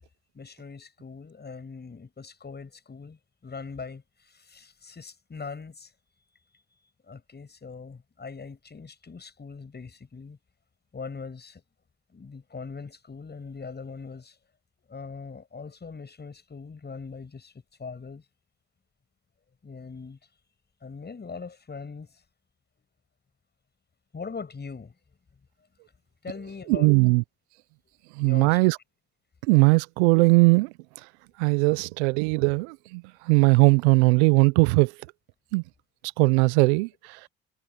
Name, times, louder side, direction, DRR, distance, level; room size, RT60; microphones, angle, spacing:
voice 1, 0.3-5.9 7.0-10.4 10.9-11.6 12.1-14.4 14.9-17.5 17.8-18.2 19.6-20.2 20.8-22.2 24.1-24.9 26.2-27.0 28.2-28.6, left 5 dB, 30° left, 7.2 m, -41 dB
voice 2, 26.7-27.2 28.2-28.8 29.5-30.7 31.4-34.9 35.5-35.6 36.2-37.3, right 30 dB, 80° right, 0.6 m, -20 dB
hypercardioid pair, 65°, 34 cm